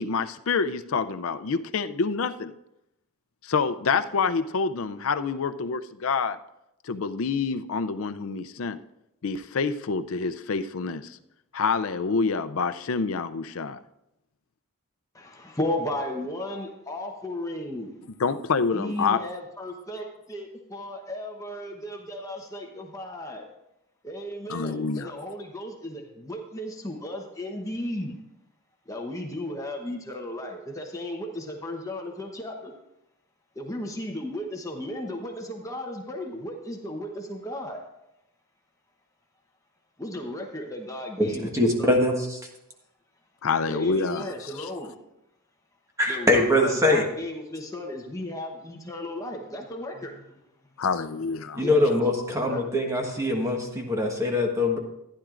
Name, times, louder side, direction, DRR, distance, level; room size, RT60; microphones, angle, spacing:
voice 1, 0.0-2.5 3.4-6.4 6.8-8.8 9.2-11.2 11.5-13.8 18.2-19.2 24.5-25.1 43.4-44.7 50.8-51.6, left 5 dB, 65° left, 11 dB, 0.5 m, -27 dB
voice 2, 15.1-18.0 18.7-23.5 24.0-28.2 28.9-32.7 33.5-37.8 40.0-42.0 43.7-45.0 46.1-50.3 51.6-52.0 52.4-52.7, left 1 dB, 15° left, 1 dB, 0.9 m, -35 dB
voice 3, 41.2-42.4 46.0-47.0 51.6-54.8, left 1 dB, 15° right, 2 dB, 1.3 m, -23 dB
15.0 x 10.0 x 2.5 m, 0.86 s
head